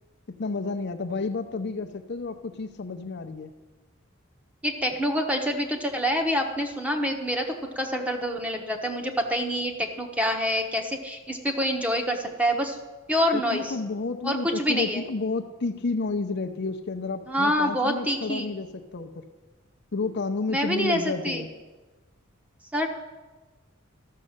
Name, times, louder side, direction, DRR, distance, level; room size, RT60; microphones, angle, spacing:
voice 1, 0.3-3.5 13.3-19.3 19.9-21.5, left 3 dB, 55° left, 8 dB, 0.6 m, -31 dB
voice 2, 4.6-7.5 7.8-12.8 13.1-13.7 14.2-15.0 17.3-18.5 20.5-21.5 22.7-22.9, equal, 5° right, 3 dB, 1.0 m, -26 dB
13.0 x 6.5 x 6.5 m, 1.2 s
head